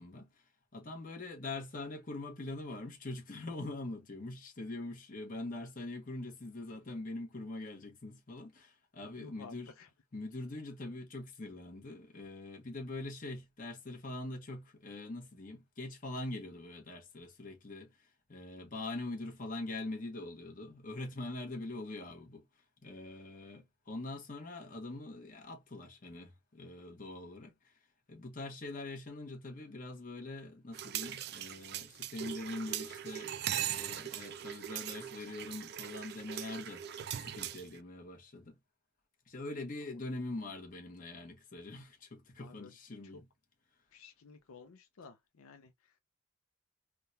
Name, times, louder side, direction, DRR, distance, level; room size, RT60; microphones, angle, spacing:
voice 1, 0.0-9.7 10.1-22.5 22.8-27.7 28.1-38.6 39.3-43.2, left 2 dB, 40° left, 1.0 m, -43 dB
voice 2, 9.0-9.9 42.4-42.7 43.1-43.2 43.9-46.0, left 4 dB, 75° left, 0.5 m, -54 dB
sound 1, 30.7-37.8, right 11 dB, 50° right, 0.3 m, -40 dB
3.6 x 2.2 x 2.7 m
head